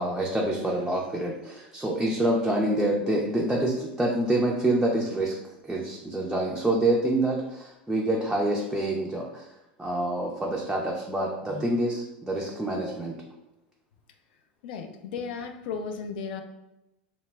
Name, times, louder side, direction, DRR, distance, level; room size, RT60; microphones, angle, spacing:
voice 1, 0.0-5.4 5.6-9.4 9.8-13.2, right 1 dB, 5° right, -2 dB, 0.4 m, -27 dB
voice 2, 14.6-16.4, left 5 dB, 75° left, 6 dB, 0.3 m, -35 dB
2.1 x 2.0 x 3.2 m, 0.92 s
hypercardioid pair, 95°, 5 cm